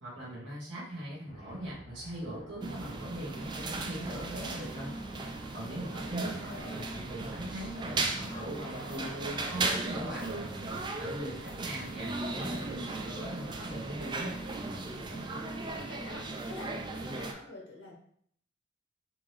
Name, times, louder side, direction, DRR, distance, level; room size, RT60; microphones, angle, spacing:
voice 1, 0.0-4.9 5.5-10.5 11.0-14.4, right 1 dB, 75° right, -7 dB, 1.4 m, -40 dB
sound 1, 1.3-15.2, equal, 30° left, 0.6 m, -53 dB
sound 2, 2.6-17.3, right 3 dB, 25° right, 0.3 m, -37 dB
voice 2, 5.5-6.6 15.1-17.9, left 1 dB, 85° left, -2 dB, 1.3 m, -47 dB
sound 3, 6.4-12.0, left 1 dB, 65° left, 0.8 m, -55 dB
3.6 x 2.9 x 3.1 m, 0.64 s
head